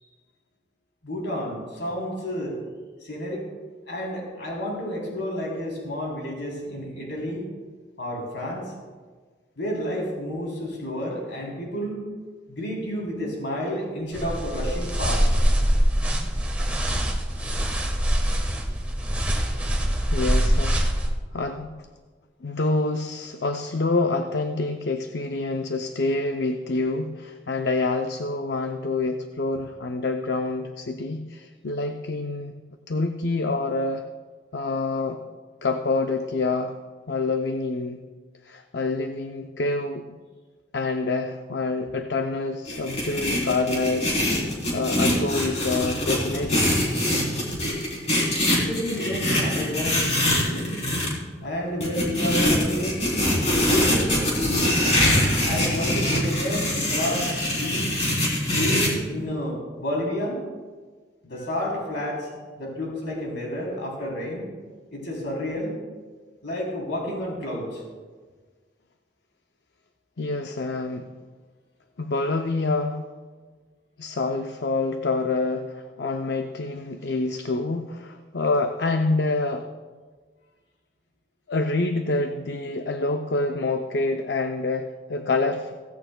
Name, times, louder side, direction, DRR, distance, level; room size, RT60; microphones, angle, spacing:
voice 1, 1.0-2.6 3.0-3.4 3.9-7.4 8.0-8.7 9.6-12.1 12.5-15.3 48.5-50.9 51.4-53.0 53.7-54.8 55.4-57.9 58.5-60.4 61.2-62.3 62.6-64.5 64.9-65.8 66.4-67.8, equal, 85° left, -2 dB, 3.4 m, -30 dB
sound 1, 14.1-21.1, equal, 10° right, 1.2 m, -23 dB
voice 2, 20.1-20.8 21.3-21.9 22.4-32.5 32.9-34.0 34.5-35.2 35.6-36.8 37.1-38.0 38.4-40.2 40.7-46.7 70.2-71.1 72.0-73.1 74.0-79.7 81.5-85.7, left 3 dB, 65° left, 6 dB, 0.6 m, -27 dB
sound 2, 42.7-51.1 51.8-58.9, left 1 dB, 35° left, 3.5 m, -23 dB
16.5 x 15.5 x 2.3 m, 1.4 s
head